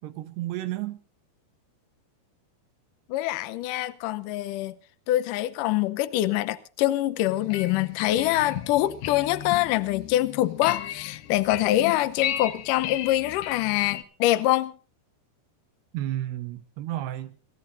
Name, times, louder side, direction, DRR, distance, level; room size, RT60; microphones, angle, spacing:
voice 1, 0.0-1.0 15.9-17.4, right 14 dB, 75° right, 2.9 m, -32 dB
voice 2, 3.1-4.8 5.1-14.7, left 15 dB, 90° left, 1.8 m, -25 dB
sound 1, 7.2-14.0, left 12 dB, 75° left, 2.8 m, -35 dB
27.0 x 14.0 x 2.6 m
omnidirectional pair, 5.0 m